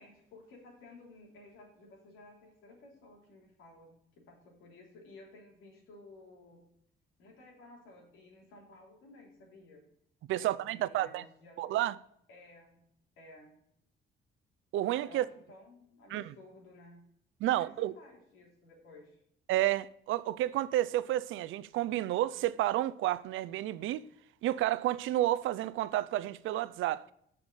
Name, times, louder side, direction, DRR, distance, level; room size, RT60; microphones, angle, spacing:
voice 1, 0.0-6.7 7.2-9.8 10.4-11.8 12.3-12.8 13.2-13.6 15.0-17.1 17.5-19.2, left 2 dB, 90° left, 3.3 m, -55 dB
voice 2, 10.3-11.2 11.6-12.0 14.7-15.3 16.1-16.2 17.4-18.0 19.5-24.1 24.4-27.0, right 14 dB, 80° right, 0.5 m, -30 dB
7.2 x 5.8 x 6.7 m
cardioid pair, 90°, 20 cm